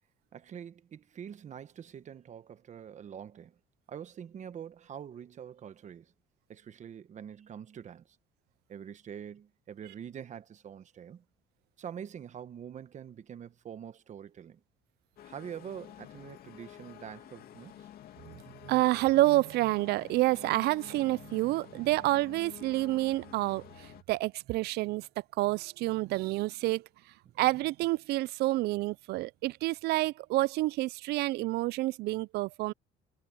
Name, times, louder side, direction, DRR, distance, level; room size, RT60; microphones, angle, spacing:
voice 1, 0.3-3.5 3.9-6.1 6.5-8.0 8.7-11.2 11.8-14.6 15.2-17.9, right 8 dB, 45° right, 1.2 m, -45 dB
sound 1, 15.2-24.0, left 11 dB, 65° left, 2.6 m, -50 dB
voice 2, 18.6-25.1 25.4-26.8 27.4-32.7, right 18 dB, 75° right, 0.4 m, -28 dB
cardioid pair, 110°, 17 cm